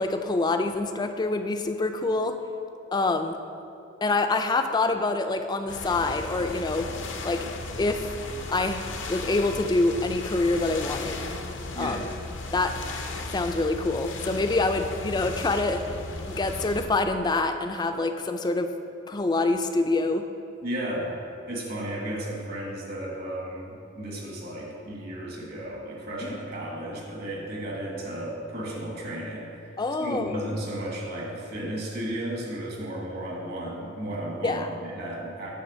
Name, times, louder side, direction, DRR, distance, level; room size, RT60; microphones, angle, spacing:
voice 1, 0.0-2.4 2.9-3.4 4.0-7.0 7.2-7.5 7.8-8.2 8.5-8.8 9.1-11.3 11.8-12.1 12.5-12.7 13.3-15.8 16.3-18.7 19.1-20.3 26.2-26.4 29.8-30.5 34.4-34.7, left 2 dB, 20° left, 7 dB, 0.4 m, -26 dB
sound 1, 5.7-16.9, left 3 dB, 75° left, 0.6 m, -36 dB
voice 2, 11.7-12.1 20.6-21.2 21.5-35.5, right 1 dB, 55° right, -2 dB, 1.5 m, -34 dB
8.7 x 3.3 x 6.2 m, 2.7 s
head